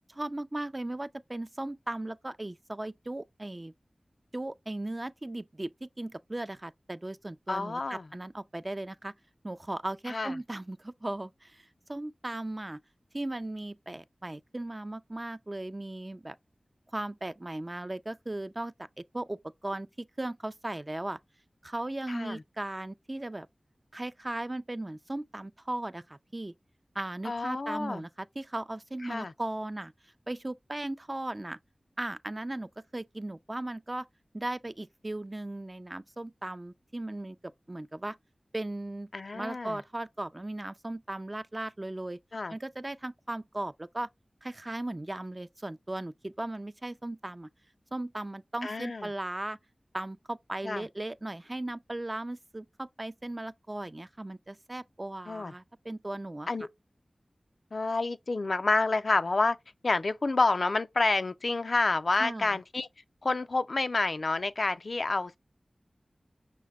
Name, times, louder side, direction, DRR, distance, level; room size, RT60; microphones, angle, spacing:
voice 1, 0.1-3.7 4.3-9.1 9.4-12.8 13.1-16.4 16.9-18.7 19.1-21.2 21.6-23.5 23.9-26.5 27.0-29.9 30.3-31.6 32.0-34.1 34.3-38.2 38.5-42.2 42.5-44.1 44.4-47.5 47.9-49.6 49.9-56.7 62.2-62.6, right 1 dB, 35° right, 0.4 m, -37 dB
voice 2, 7.5-8.0 10.1-10.3 22.1-22.4 27.2-28.0 29.1-29.3 39.1-39.8 42.3-42.5 48.6-49.1 50.6-50.9 55.3-55.5 56.5-56.7 57.7-59.6 59.8-62.9 63.2-65.4, left 3 dB, 70° left, 0.4 m, -29 dB
5.7 x 2.1 x 3.5 m
wide cardioid pair, 45°, 0 cm